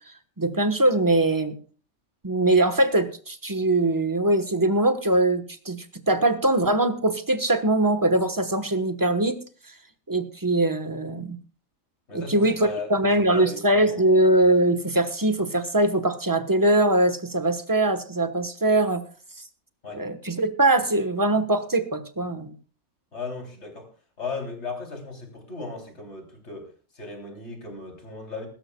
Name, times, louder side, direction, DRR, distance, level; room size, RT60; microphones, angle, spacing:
voice 1, 0.4-1.6 2.2-9.4 10.1-11.4 12.1-19.0 19.9-22.5, right 1 dB, 15° right, 9 dB, 1.0 m, -22 dB
voice 2, 12.1-12.9 13.2-14.1 19.8-20.0 23.1-23.9 24.2-26.7 26.9-28.5, left 4 dB, 50° left, 2 dB, 3.6 m, -36 dB
22.0 x 13.0 x 2.3 m, 0.39 s
omnidirectional pair, 1.5 m